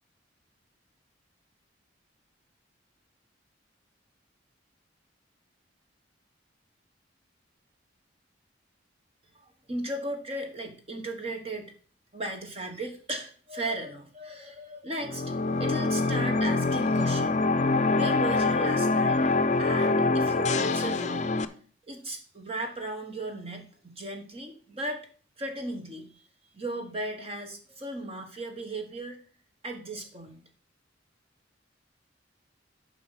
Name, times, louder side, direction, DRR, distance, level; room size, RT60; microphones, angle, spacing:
voice 1, 9.3-11.7 12.1-17.4 17.9-19.2 19.6-21.3 21.9-25.1 25.4-26.2 26.5-29.2 29.6-30.4, right 1 dB, 30° right, 4 dB, 1.2 m, -36 dB
sound 1, 15.0-21.4, left 3 dB, 35° left, 0.5 m, -25 dB
8.5 x 5.4 x 5.6 m, 0.42 s
head